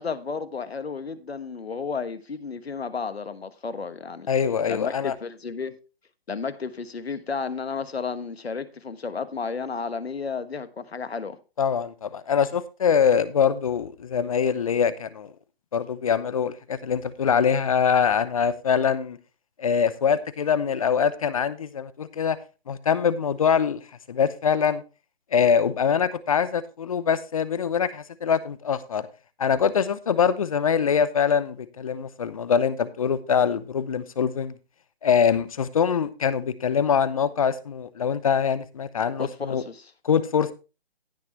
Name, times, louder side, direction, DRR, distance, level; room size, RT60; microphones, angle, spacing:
voice 1, 0.0-4.3 4.7-5.7 6.3-11.4 39.2-39.9, left 5 dB, 85° left, 1.3 m, -32 dB
voice 2, 4.3-5.1 11.6-15.3 15.7-19.2 19.6-22.4 22.7-23.8 24.1-24.8 25.3-29.1 29.4-34.6 35.0-39.6 40.0-40.5, left 7 dB, 35° left, 0.7 m, -23 dB
16.5 x 5.9 x 3.0 m
hypercardioid pair, 155°, 30 cm